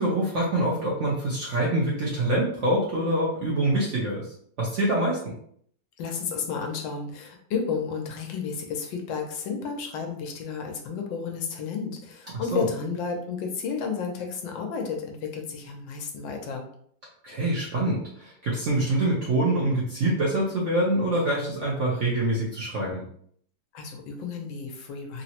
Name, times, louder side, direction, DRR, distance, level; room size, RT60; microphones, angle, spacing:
voice 1, 0.0-5.2 12.5-12.6 17.2-23.0, right 1 dB, 65° right, -5 dB, 0.7 m, -25 dB
voice 2, 6.0-16.7 23.7-25.2, left 5 dB, 90° left, 2 dB, 1.4 m, -32 dB
3.6 x 2.0 x 2.8 m, 0.63 s
omnidirectional pair, 2.0 m